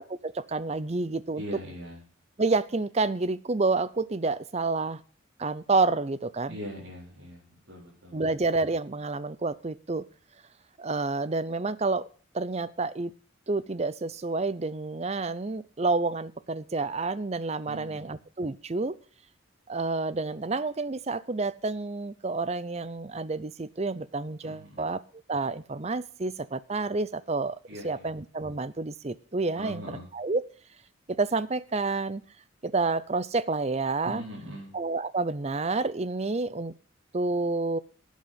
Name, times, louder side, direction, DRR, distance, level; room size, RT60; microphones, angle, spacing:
voice 1, 0.0-1.4 2.4-5.0 5.4-6.6 8.1-10.1 10.8-12.1 12.3-13.1 13.5-18.9 19.7-25.0 25.3-27.6 27.8-29.8 30.1-30.4 31.2-32.2 32.6-34.2 34.7-36.7 37.1-37.8, right 3 dB, 30° right, 17 dB, 0.6 m, -29 dB
voice 2, 1.3-2.0 6.5-8.2 17.6-18.1 24.4-24.8 27.7-28.1 29.5-30.1 34.0-34.7, equal, 65° right, -6 dB, 4.5 m, -41 dB
11.5 x 8.5 x 7.4 m, 0.42 s
head